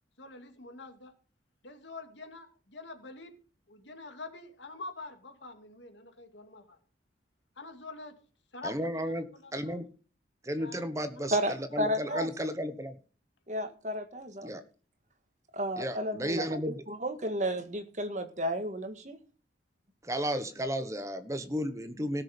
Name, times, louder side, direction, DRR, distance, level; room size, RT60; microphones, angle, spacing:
voice 1, 0.2-1.1 1.6-3.4 3.7-6.8 7.6-8.2 8.5-9.8 10.5-11.4 11.7-12.2, left 3 dB, 80° left, 6 dB, 2.4 m, -46 dB
voice 2, 8.6-9.9 10.4-12.9 14.4-14.6 15.8-16.8 20.0-22.2, equal, 15° right, 9 dB, 1.1 m, -33 dB
voice 3, 11.3-12.3 13.5-14.5 15.5-16.5 16.9-19.2, equal, 40° right, 8 dB, 1.8 m, -32 dB
18.0 x 6.7 x 5.2 m, 0.38 s
head